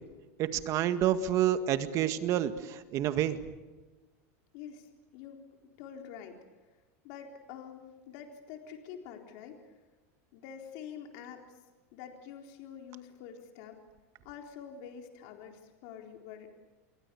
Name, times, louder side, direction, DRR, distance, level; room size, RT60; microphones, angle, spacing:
voice 1, 0.4-3.4, right 11 dB, 40° right, 9 dB, 1.9 m, -28 dB
voice 2, 4.5-5.4 5.8-6.4 7.0-9.6 10.3-11.6 11.9-13.8 14.2-16.5, left 8 dB, 60° left, 3 dB, 4.0 m, -46 dB
28.0 x 23.5 x 7.0 m, 1.2 s
supercardioid pair, 140°, 8 cm